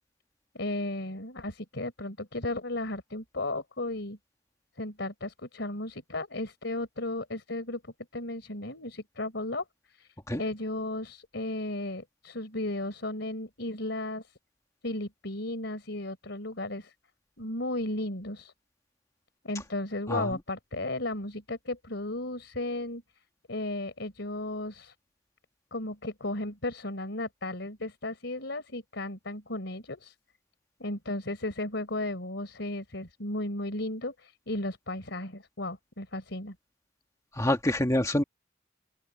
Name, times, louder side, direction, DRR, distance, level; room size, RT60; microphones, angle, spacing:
voice 1, 0.5-4.2 4.8-7.8 8.1-14.3 14.8-16.9 17.4-18.5 19.4-23.0 23.5-24.9 25.7-30.1 30.8-36.6, left 2 dB, 65° left, 4.2 m, -35 dB
voice 2, 37.4-38.2, left 1 dB, 20° left, 1.9 m, -26 dB
open air
head